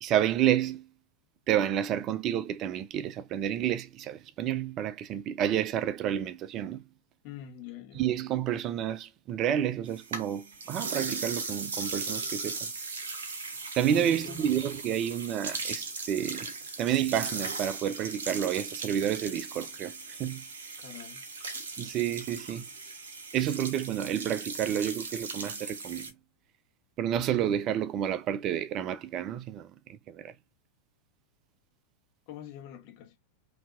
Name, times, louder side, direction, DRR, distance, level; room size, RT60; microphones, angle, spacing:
voice 1, 0.0-0.9 1.5-6.8 7.9-12.6 13.7-20.4 21.8-22.7 23.3-26.1 27.0-29.7 30.1-30.3, right 10 dB, 35° right, 0.3 m, -30 dB
voice 2, 7.2-8.0 13.9-14.5 20.8-21.2 32.3-33.2, left 11 dB, 45° left, 1.2 m, -45 dB
sound 1, 9.9-26.1, right 4 dB, 60° right, 1.0 m, -38 dB
5.6 x 2.8 x 2.5 m
figure-of-eight pair, 90°, 0 cm